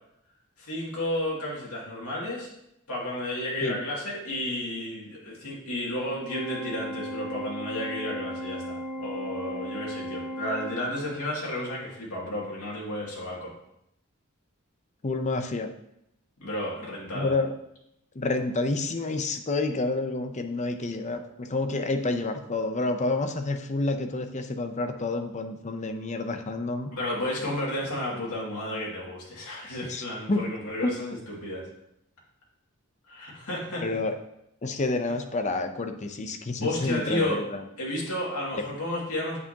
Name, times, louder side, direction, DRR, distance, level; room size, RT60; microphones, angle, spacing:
voice 1, 0.6-2.5 2.9-13.5 16.4-17.3 26.9-31.6 33.1-33.8 36.6-37.4 37.8-39.4, left 1 dB, 80° left, -5 dB, 2.3 m, -32 dB
Organ, 6.3-11.3, equal, 10° right, 0.9 m, -36 dB
voice 2, 15.0-15.7 17.1-17.5 18.1-26.9 29.9-30.4 30.8-30.9 33.8-34.1 34.6-37.6 38.5-38.6, left 2 dB, 30° left, 7 dB, 0.6 m, -29 dB
8.3 x 7.1 x 2.9 m, 0.79 s
head